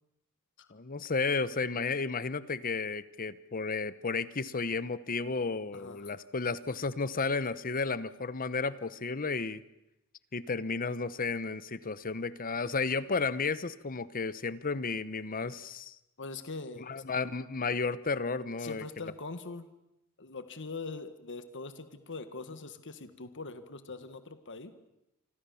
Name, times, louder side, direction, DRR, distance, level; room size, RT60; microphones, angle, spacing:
voice 1, 0.7-9.6 10.3-16.0 16.9-18.8, left 4 dB, 40° left, 16 dB, 0.9 m, -33 dB
voice 2, 5.7-6.2 16.2-17.0 18.6-19.7 20.2-24.7, left 3 dB, 55° left, 10 dB, 1.7 m, -42 dB
27.5 x 25.5 x 7.1 m, 0.87 s
head